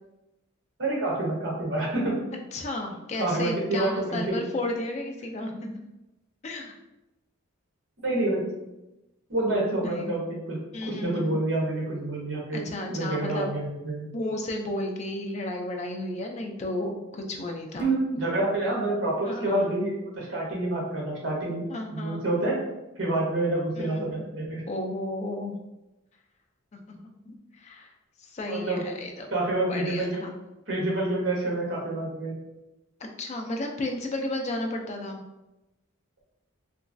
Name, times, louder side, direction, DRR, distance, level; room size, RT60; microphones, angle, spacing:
voice 1, 0.8-2.2 3.2-4.4 8.0-8.4 9.3-14.1 17.8-21.6 21.9-22.6 23.0-24.6 28.5-28.8 29.3-30.2 30.7-32.3, right 2 dB, 60° right, -4 dB, 0.9 m, -28 dB
voice 2, 2.5-5.8 6.4-6.7 9.8-10.2 10.7-11.4 12.5-13.5 14.1-17.9 19.2-19.7 21.7-22.2 23.8-24.1 24.7-25.6 26.7-27.9 28.2-29.3 29.7-30.4 33.0-35.2, left 1 dB, 30° left, 2 dB, 0.3 m, -33 dB
3.0 x 2.3 x 2.5 m, 0.97 s
head